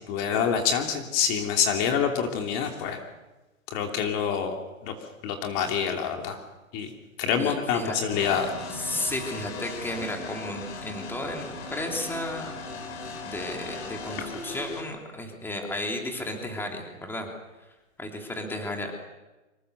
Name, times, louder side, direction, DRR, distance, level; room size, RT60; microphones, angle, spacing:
voice 1, 0.1-3.0 3.7-4.6 4.8-4.9 5.2-6.4 6.7-6.9 7.2-8.5, left 7 dB, 35° left, 3 dB, 2.9 m, -26 dB
voice 2, 7.4-8.0 8.7-12.5 13.1-17.3 18.0-19.1, left 1 dB, 5° left, 2 dB, 3.4 m, -33 dB
sound 1, 8.1-14.8, left 3 dB, 55° left, 5.8 m, -38 dB
25.5 x 23.0 x 6.8 m, 1.1 s
hypercardioid pair, 135°, 40 cm